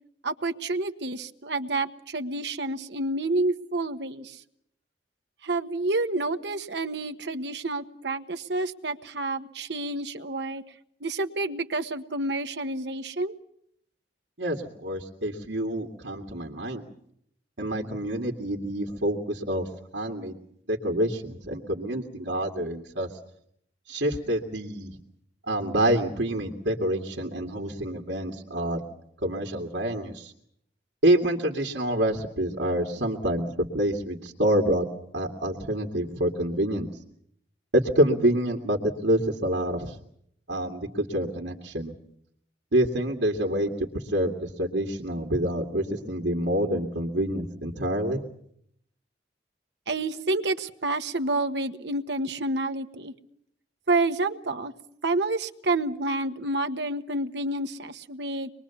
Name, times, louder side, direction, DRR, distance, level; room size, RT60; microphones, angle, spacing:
voice 1, 0.2-4.4 5.4-10.6 11.0-13.3 49.9-53.1 53.9-54.7 55.0-58.5, right 2 dB, 70° right, 8 dB, 1.4 m, -29 dB
voice 2, 14.4-16.8 17.6-20.4 20.7-23.2 23.9-25.0 25.5-28.8 29.2-30.3 31.0-34.9 35.1-36.9 37.7-40.0 40.5-41.9 42.7-48.2, right 1 dB, 85° right, 1 dB, 2.3 m, -27 dB
25.5 x 22.0 x 7.1 m, 0.70 s
head